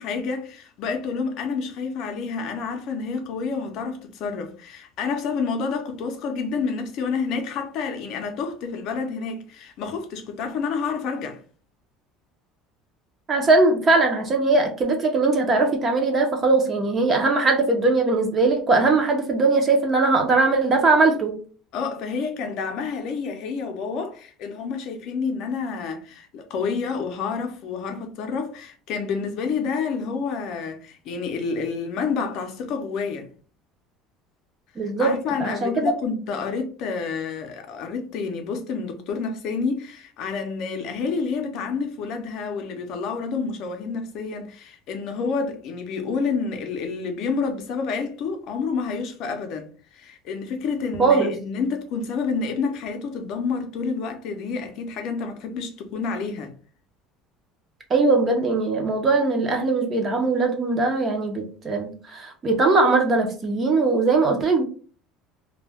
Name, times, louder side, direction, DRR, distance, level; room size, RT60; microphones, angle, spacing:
voice 1, 0.0-11.4 21.7-33.3 34.8-56.5, left 5 dB, 50° left, 0.5 m, -29 dB
voice 2, 13.3-21.4 34.8-35.1 35.4-35.9 51.0-51.3 57.9-64.6, right 3 dB, 25° right, 0.5 m, -20 dB
2.2 x 2.1 x 3.3 m
cardioid pair, 160°, 0 cm